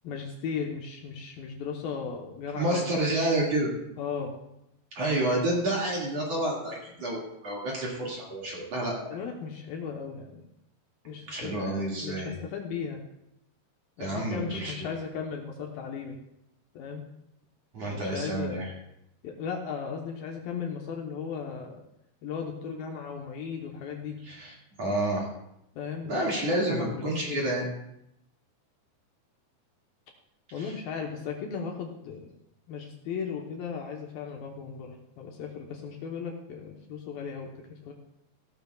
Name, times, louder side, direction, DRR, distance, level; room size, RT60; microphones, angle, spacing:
voice 1, 0.0-3.0 4.0-4.4 9.1-10.4 11.0-13.0 14.0-16.2 16.7-17.0 17.9-18.7 19.2-21.8 22.2-24.2 25.7-26.1 26.5-27.4 30.5-32.3 32.7-37.9, left 6 dB, 70° left, 1 dB, 2.5 m, -36 dB
voice 2, 2.5-3.7 4.9-9.1 11.3-12.5 14.0-14.7 17.7-18.7 24.2-24.5 24.8-25.3 26.0-27.7 30.6-30.7, right 1 dB, 45° right, -4 dB, 2.7 m, -29 dB
16.5 x 13.5 x 2.3 m, 0.80 s
omnidirectional pair, 4.9 m